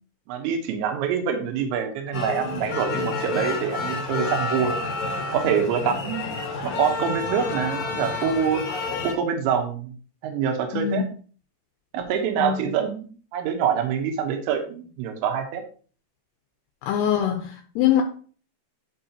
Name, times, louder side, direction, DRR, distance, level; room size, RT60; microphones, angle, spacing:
voice 1, 0.3-4.8 5.3-6.2 6.6-8.6 9.0-9.9 10.2-11.0 11.9-15.6, right 7 dB, 80° right, 3.3 m, -25 dB
sound 1, 2.1-9.1, left 3 dB, 60° left, 2.1 m, -29 dB
voice 2, 10.7-11.0 12.4-12.6 16.8-18.0, left 10 dB, 85° left, 2.5 m, -23 dB
11.0 x 4.9 x 2.8 m
omnidirectional pair, 5.2 m